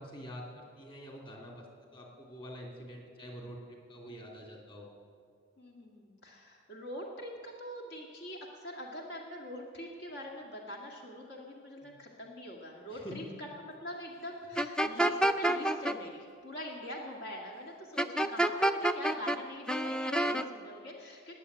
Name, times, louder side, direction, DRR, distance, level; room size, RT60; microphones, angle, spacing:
voice 1, 0.0-1.7 1.9-4.9 11.8-11.9 12.9-13.2, equal, 25° left, -1 dB, 2.7 m, -46 dB
voice 2, 5.6-21.4, equal, 60° left, -1 dB, 1.9 m, -44 dB
sound 1, 14.6-15.9 18.0-19.4 19.7-20.4, right 1 dB, 5° left, 0.5 m, -28 dB
19.5 x 7.5 x 9.8 m, 2.3 s
head